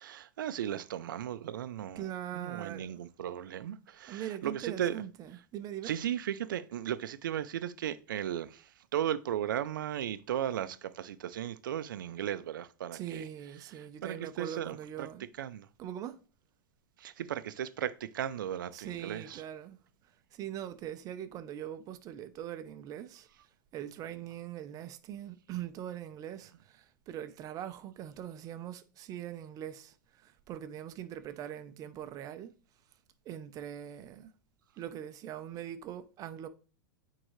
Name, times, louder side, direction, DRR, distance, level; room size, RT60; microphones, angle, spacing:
voice 1, 0.0-2.1 2.3-5.0 5.8-13.2 13.8-15.1 15.4-15.7 17.0-19.4, right 10 dB, 75° right, 0.5 m, -36 dB
voice 2, 2.0-3.0 4.1-5.9 12.9-15.3 15.8-16.2 18.7-19.8 20.3-23.3 23.7-32.5 33.2-34.3 34.8-36.5, right 11 dB, 35° right, 0.7 m, -42 dB
8.9 x 3.8 x 3.2 m
hypercardioid pair, 115°, 11 cm